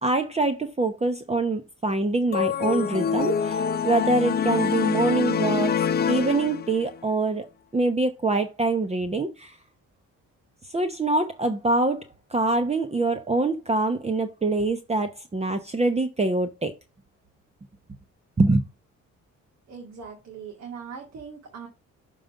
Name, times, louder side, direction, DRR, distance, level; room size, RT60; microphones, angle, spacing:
voice 1, 0.0-5.7 6.1-7.5 7.7-9.6 10.7-16.7 18.4-18.7, right 2 dB, 20° right, 0.9 m, -24 dB
sound 1, 2.3-7.0, left 7 dB, 35° left, 0.5 m, -25 dB
voice 2, 19.7-21.7, right 6 dB, 60° right, 2.0 m, -40 dB
6.6 x 3.9 x 5.4 m
cardioid pair, 90°, 30 cm